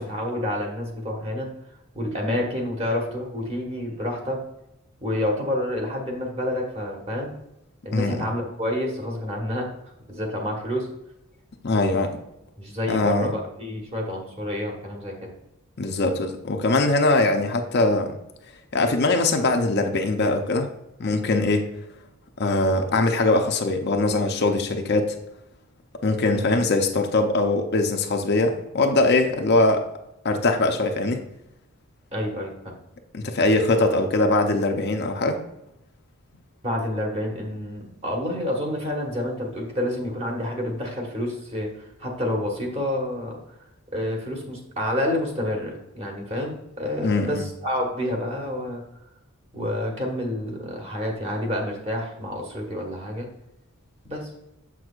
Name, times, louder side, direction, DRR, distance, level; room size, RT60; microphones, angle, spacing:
voice 1, 0.0-1.5 1.9-4.4 5.0-7.3 7.8-9.7 10.1-10.9 12.6-15.3 26.2-26.5 32.1-32.7 36.6-41.7 42.0-43.4 43.9-48.8 49.5-53.3 54.1-54.3, left 1 dB, 30° right, 1 dB, 1.4 m, -28 dB
voice 2, 7.9-8.2 11.6-12.2 12.9-13.3 15.8-18.2 18.7-20.7 21.0-21.7 22.4-25.2 26.0-29.8 30.2-31.2 33.1-35.4 47.0-47.4, left 2 dB, 50° left, 4 dB, 0.6 m, -22 dB
7.2 x 6.1 x 2.4 m, 0.86 s
head